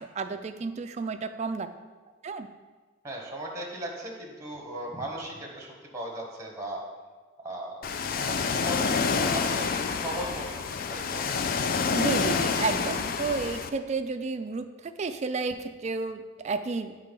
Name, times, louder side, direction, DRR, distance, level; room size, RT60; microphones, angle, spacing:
voice 1, 0.0-1.7 2.2-2.5 11.9-17.0, right 4 dB, 35° right, 9 dB, 0.3 m, -32 dB
voice 2, 3.0-6.8 7.4-7.8 8.1-11.3, right 1 dB, 15° right, -1 dB, 1.0 m, -37 dB
Ocean, 7.8-13.7, left 5 dB, 45° left, 0.3 m, -28 dB
7.9 x 3.7 x 5.2 m, 1.4 s
head